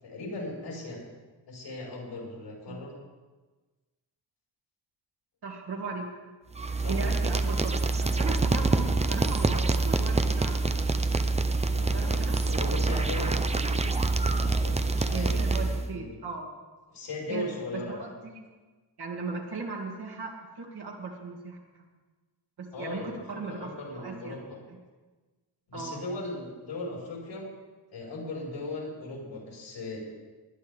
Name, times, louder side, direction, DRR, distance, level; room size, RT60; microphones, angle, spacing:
voice 1, 0.0-1.0 1.5-2.9 6.8-7.0 11.7-13.9 14.3-16.1 16.9-18.1 22.7-24.6 25.7-27.5 27.9-30.0, left 2 dB, 85° left, -2 dB, 5.1 m, -38 dB
voice 2, 5.4-6.1 6.6-10.6 11.9-12.4 15.1-16.5 17.3-17.5 17.9-18.4 19.0-21.6 22.6-23.7 24.0-24.4 25.7-26.0, right 4 dB, 65° right, -2 dB, 2.3 m, -37 dB
sound 1, 6.5-15.9, right 3 dB, 15° right, 0.6 m, -26 dB
20.0 x 11.5 x 3.6 m, 1.3 s
wide cardioid pair, 130°, 43 cm